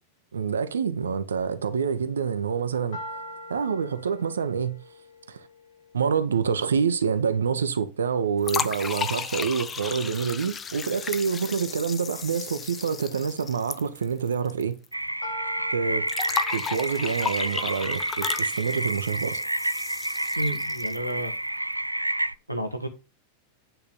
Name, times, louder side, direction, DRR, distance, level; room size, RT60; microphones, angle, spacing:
voice 1, 0.3-3.2 3.5-4.8 5.3-5.5 5.9-14.8 15.7-16.1 16.5-19.4, right 6 dB, 70° right, 0.8 m, -27 dB
sound 1, 2.9-6.9 15.2-19.3, equal, 55° left, 4.3 m, -43 dB
sound 2, 8.4-14.6 14.9-15.0 16.1-21.1, left 6 dB, 20° left, 0.7 m, -34 dB
sound 3, 14.9-22.3, right 1 dB, 85° right, 0.3 m, -29 dB
voice 2, 20.4-21.3 22.5-22.9, right 1 dB, 90° left, 1.6 m, -30 dB
9.1 x 4.1 x 6.9 m
figure-of-eight pair, 90°, 0 cm